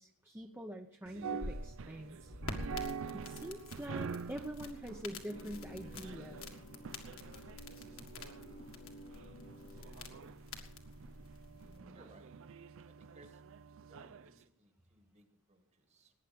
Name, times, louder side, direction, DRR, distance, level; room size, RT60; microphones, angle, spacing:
voice 1, 0.0-2.3 3.1-6.4 11.5-12.1, right 1 dB, 10° right, 2 dB, 0.7 m, -45 dB
sound 1, 1.1-14.3, right 5 dB, 60° right, 0.5 m, -47 dB
sound 2, 1.2-11.8, left 2 dB, 65° left, 1.9 m, -48 dB
sound 3, 5.3-10.5, left 1 dB, 45° left, 0.8 m, -54 dB
voice 2, 11.9-12.3 12.9-13.4 13.8-16.1, right 2 dB, 30° right, 7 dB, 1.6 m, -63 dB
18.5 x 9.8 x 5.1 m, 0.66 s
head